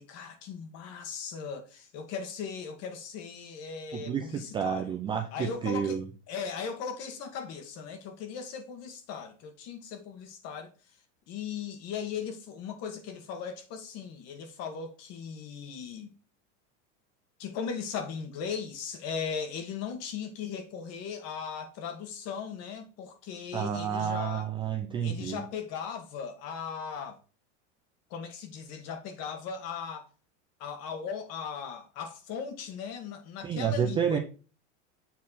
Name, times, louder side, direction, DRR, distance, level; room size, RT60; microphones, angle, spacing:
voice 1, 0.0-5.0 5.3-10.7 11.3-16.1 17.4-24.5 25.0-27.2 28.1-30.1 30.6-34.2, left 6 dB, 40° left, 1.5 m, -38 dB
voice 2, 3.9-6.0 23.5-25.4 33.4-34.2, right 8 dB, 15° right, 0.3 m, -30 dB
7.4 x 4.2 x 4.1 m
supercardioid pair, 150°, 38 cm